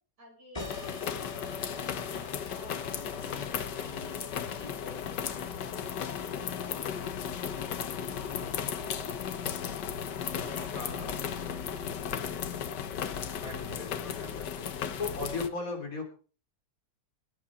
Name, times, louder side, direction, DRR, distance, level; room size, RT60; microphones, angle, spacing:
voice 1, 0.2-5.6 6.0-6.4 6.7-7.2 7.6-9.2 10.2-11.8, equal, 75° right, -1 dB, 8.1 m, -52 dB
sound 1, 0.5-5.7, left 2 dB, 20° left, 2.0 m, -46 dB
sound 2, 0.6-15.5, left 8 dB, 85° left, 1.7 m, -35 dB
voice 2, 10.7-11.1 13.4-14.6 15.0-16.1, left 3 dB, 55° left, 3 dB, 4.0 m, -37 dB
19.0 x 8.6 x 5.1 m, 0.39 s
omnidirectional pair, 1.8 m